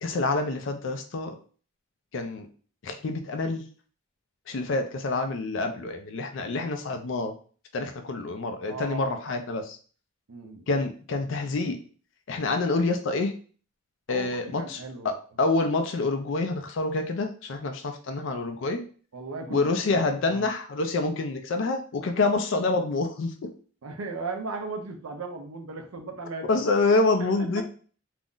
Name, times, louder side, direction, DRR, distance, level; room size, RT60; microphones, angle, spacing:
voice 1, 0.0-1.3 2.1-2.5 2.8-3.6 4.5-7.3 7.7-9.8 10.7-11.8 12.3-13.3 14.1-18.8 19.5-23.5 26.5-27.6, left 3 dB, 60° left, 6 dB, 0.4 m, -27 dB
voice 2, 8.7-9.4 10.3-10.6 11.2-11.3 14.1-15.1 19.1-20.5 23.8-26.6 27.3-27.6, right 3 dB, 85° right, 4 dB, 0.5 m, -37 dB
2.5 x 2.1 x 3.6 m, 0.41 s
head